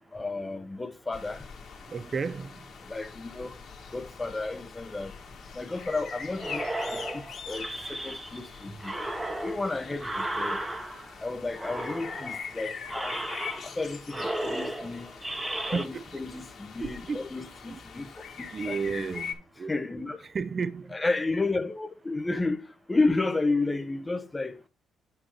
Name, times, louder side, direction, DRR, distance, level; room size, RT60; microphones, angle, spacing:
voice 1, 0.1-1.4 2.9-3.5 3.9-5.1 5.5-6.6 6.9-8.9 9.4-10.6 11.2-13.2 13.8-15.1 15.7-18.1 18.7-18.8 19.7-20.2 20.9-22.6 22.9-24.6, left 3 dB, 20° left, 0.9 m, -31 dB
sound 1, 1.1-19.3, left 6 dB, 55° left, 2.1 m, -43 dB
voice 2, 1.9-2.6 15.7-16.0 16.8-17.2 17.7-17.8 18.5-19.7 20.2-21.0, right 5 dB, 40° right, 0.5 m, -33 dB
sound 2, 6.4-8.5 8.8-11.2 11.6-12.5 12.9-13.8 14.1-15.9, right 1 dB, 15° right, 1.1 m, -34 dB
8.7 x 3.0 x 6.3 m
cardioid pair, 90°, 0 cm